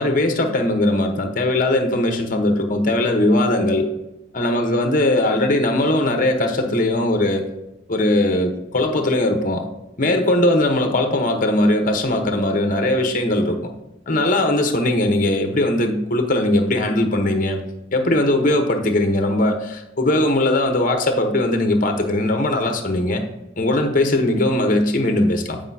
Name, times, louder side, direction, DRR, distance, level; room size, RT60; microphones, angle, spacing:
voice 1, 0.0-3.9 4.3-7.5 7.9-9.7 10.0-13.7 14.1-17.6 17.9-23.2 23.6-25.6, left 1 dB, 45° left, 5 dB, 1.0 m, -19 dB
9.6 x 5.0 x 2.8 m, 0.95 s
head